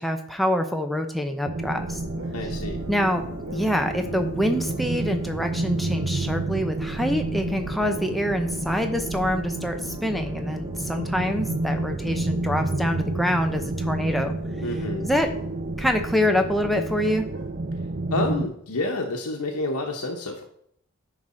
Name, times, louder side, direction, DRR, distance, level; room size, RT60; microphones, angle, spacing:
voice 1, 0.0-2.0 2.9-3.2 3.5-14.3 15.0-15.3 15.8-17.3, left 1 dB, ahead, 4 dB, 0.7 m, -26 dB
sound 1, 1.4-18.5, right 2 dB, 35° right, 0.4 m, -30 dB
sound 2, 1.6-17.8, left 1 dB, 50° left, 0.9 m, -40 dB
sound 3, 2.1-2.6 3.1-3.9 4.6-5.0 6.1-6.2 6.8-7.0 8.8-8.9 10.9-12.5 12.8-12.9 15.2-16.5 16.8-19.1 19.4-19.6, right 3 dB, 70° right, 1.9 m, -48 dB
voice 2, 2.3-2.8 14.6-15.0 18.1-20.4, left 2 dB, 90° left, 1 dB, 1.0 m, -29 dB
10.0 x 4.9 x 4.3 m, 0.67 s
head